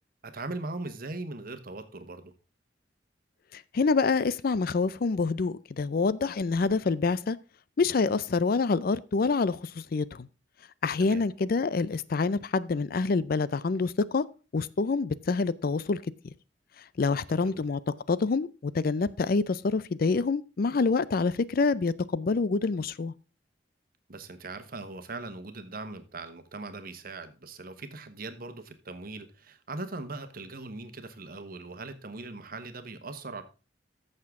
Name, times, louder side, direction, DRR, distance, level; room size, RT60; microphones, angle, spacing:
voice 1, 0.2-2.3 11.0-11.3 17.1-17.6 24.1-33.4, right 3 dB, 50° right, 1.2 m, -40 dB
voice 2, 3.5-7.4 7.8-10.3 10.8-14.2 14.5-16.0 17.0-23.1, left 4 dB, 50° left, 0.4 m, -27 dB
14.0 x 6.6 x 3.6 m
head